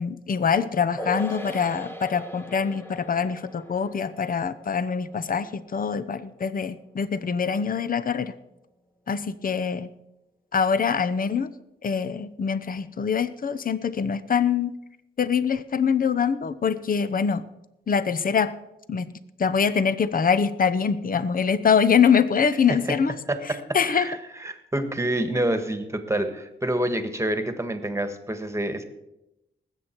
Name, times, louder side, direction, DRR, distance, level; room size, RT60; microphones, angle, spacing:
voice 1, 0.0-8.3 9.1-9.9 10.5-11.5 11.8-14.7 15.2-17.4 17.9-18.5 18.9-19.1 19.4-23.1 23.7-24.1, left 6 dB, 50° left, 13 dB, 0.7 m, -24 dB
sound 1, 1.0-7.6 7.9-8.0, equal, 10° left, 1.3 m, -40 dB
voice 2, 23.3-28.8, right 1 dB, 15° right, 9 dB, 1.5 m, -27 dB
20.0 x 8.0 x 4.5 m, 0.89 s
cardioid pair, 80°, 19 cm